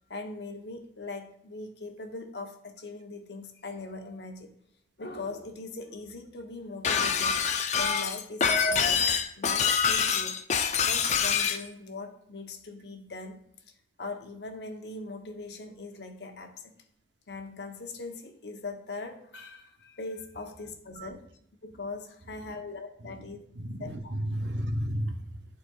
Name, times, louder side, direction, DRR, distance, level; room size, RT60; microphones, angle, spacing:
voice 1, 0.1-4.5 5.0-7.4 7.8-9.1 9.4-10.4 10.8-13.4 14.0-16.8 17.3-21.3 21.6-23.4 23.8-24.1, left 3 dB, 70° left, 4 dB, 0.9 m, -40 dB
Shatter, 6.8-11.6, left 6 dB, 40° left, 0.4 m, -25 dB
voice 2, 23.5-25.4, equal, 85° right, 6 dB, 0.7 m, -33 dB
11.0 x 4.2 x 2.4 m, 0.72 s
head